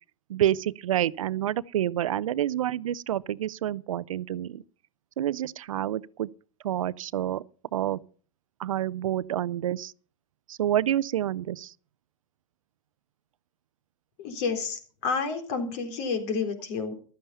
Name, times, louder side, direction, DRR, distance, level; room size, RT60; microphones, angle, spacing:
voice 1, 0.3-4.6 5.2-6.3 6.6-7.4 7.7-8.0 8.6-9.9 10.5-11.7, right 12 dB, 75° right, 0.6 m, -28 dB
voice 2, 14.2-16.9, left 5 dB, 55° left, 4.0 m, -30 dB
14.5 x 12.5 x 5.6 m
hypercardioid pair, 95°, 17 cm